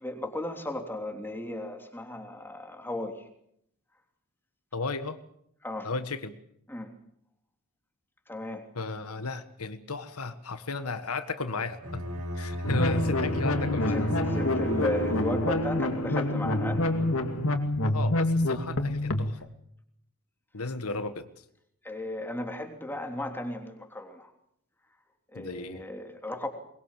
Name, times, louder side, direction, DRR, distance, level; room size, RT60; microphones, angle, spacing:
voice 1, 0.0-3.3 5.6-5.9 6.7-6.9 8.3-8.6 13.9-16.8 21.8-24.3 25.3-26.5, left 1 dB, 10° left, 4 dB, 3.3 m, -35 dB
voice 2, 4.7-5.2 5.8-6.3 8.7-14.1 17.8-19.5 20.5-21.3 25.3-25.8, left 3 dB, 85° left, 10 dB, 1.6 m, -35 dB
Bowed string instrument, 11.8-15.8, equal, 75° right, 5.8 m, -35 dB
sound 1, 12.6-19.3, left 1 dB, 65° left, 2.4 m, -27 dB
22.5 x 22.0 x 7.5 m, 0.73 s
head